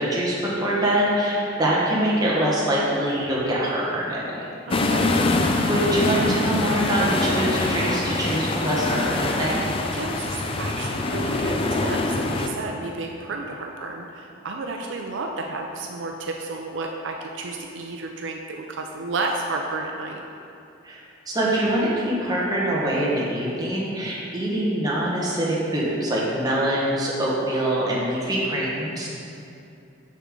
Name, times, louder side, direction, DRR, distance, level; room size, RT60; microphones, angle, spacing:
voice 1, 0.0-4.4 4.8-4.9 5.7-9.6 20.8-21.0 21.3-29.2, right 1 dB, 20° right, -6 dB, 1.2 m, -24 dB
sound 1, 4.7-12.5, left 2 dB, 30° left, 0.4 m, -24 dB
voice 2, 4.7-5.2 5.5-5.7 9.9-20.2, right 3 dB, 70° right, 2 dB, 0.5 m, -32 dB
6.6 x 6.4 x 3.7 m, 2.7 s
head